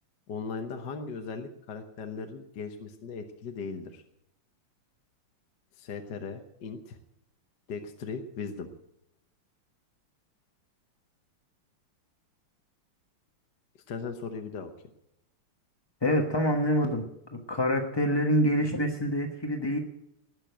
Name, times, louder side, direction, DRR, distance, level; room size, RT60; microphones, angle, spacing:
voice 1, 0.3-4.0 5.8-7.0 7.7-8.7 13.9-14.7, left 5 dB, 55° left, 5 dB, 1.6 m, -38 dB
voice 2, 16.0-17.0 17.3-19.8, equal, 20° left, 3 dB, 0.6 m, -26 dB
19.5 x 6.8 x 9.1 m, 0.83 s
omnidirectional pair, 2.4 m